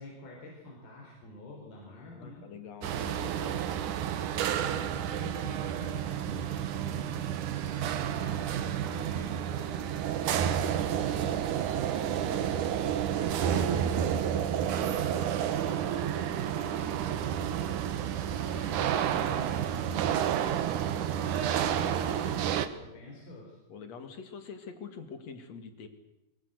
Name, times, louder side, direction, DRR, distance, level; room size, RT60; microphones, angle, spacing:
voice 1, 0.0-2.4 3.1-3.3 4.6-7.3 7.7-12.6 13.0-23.6, left 1 dB, 80° left, -1 dB, 6.4 m, -47 dB
voice 2, 1.9-4.0 23.7-25.9, left 6 dB, 50° left, 8 dB, 3.2 m, -45 dB
sound 1, 2.8-22.7, right 9 dB, 65° right, 2.5 m, -30 dB
24.0 x 22.0 x 8.2 m, 0.90 s
omnidirectional pair, 4.3 m